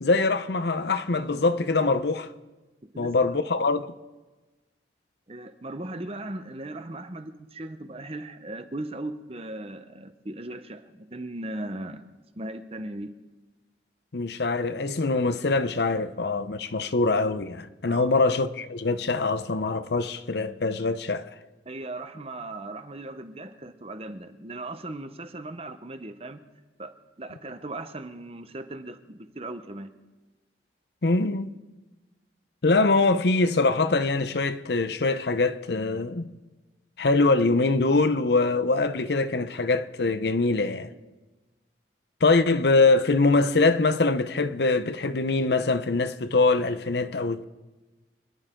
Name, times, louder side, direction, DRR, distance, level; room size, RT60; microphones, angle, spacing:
voice 1, 0.0-2.3 3.0-3.8 14.1-21.3 31.0-31.5 32.6-36.3 37.0-40.9 42.2-47.4, left 3 dB, 65° left, 0.7 m, -23 dB
voice 2, 2.8-3.4 5.3-12.0 12.4-13.1 16.6-16.7 17.9-18.1 21.6-26.4 26.8-29.9, right 2 dB, 30° right, 0.9 m, -38 dB
26.0 x 11.5 x 3.8 m
head